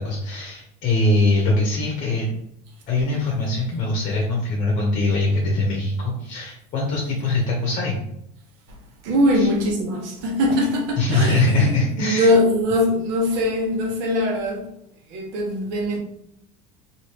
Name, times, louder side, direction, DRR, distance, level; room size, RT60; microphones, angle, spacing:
voice 1, 0.0-2.3 2.9-8.0 9.3-9.5 11.0-12.3, left 2 dB, 40° left, 0.9 m, -22 dB
voice 2, 9.0-14.7 15.1-16.0, left 1 dB, 70° right, 1.1 m, -21 dB
3.1 x 2.8 x 2.9 m
supercardioid pair, 125°, 20 cm